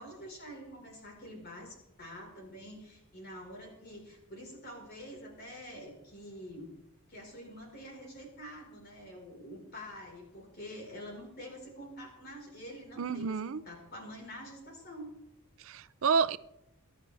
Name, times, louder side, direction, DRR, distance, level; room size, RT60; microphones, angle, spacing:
voice 1, 0.0-6.7 7.1-15.1, equal, 45° left, 4.6 m, -47 dB
voice 2, 13.0-13.6 15.6-16.4, right 5 dB, 65° right, 0.5 m, -29 dB
25.5 x 11.0 x 3.4 m
head